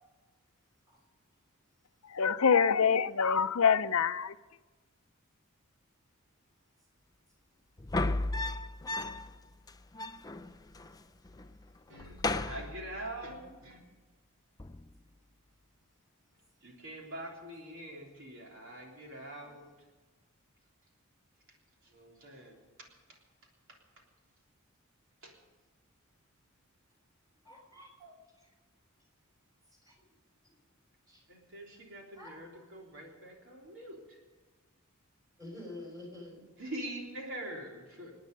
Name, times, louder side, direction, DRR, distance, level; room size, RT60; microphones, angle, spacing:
voice 1, 2.1-4.3, left 6 dB, 75° left, 0.6 m, -25 dB
sound 1, 7.8-9.4 9.7-9.8 9.9-10.9 11.2-11.6 11.9-13.3 14.6-15.0, left 2 dB, 15° left, 0.5 m, -35 dB
voice 2, 11.9-13.8 16.6-19.7 21.8-23.2 23.7-23.8 25.2-25.3 31.3-34.2 36.4-38.1, right 1 dB, 65° right, 3.4 m, -44 dB
voice 3, 27.4-28.1 29.8-29.9 31.1-31.2 32.2-32.6 35.4-36.4, left 1 dB, 15° right, 5.5 m, -48 dB
27.5 x 9.6 x 5.3 m
head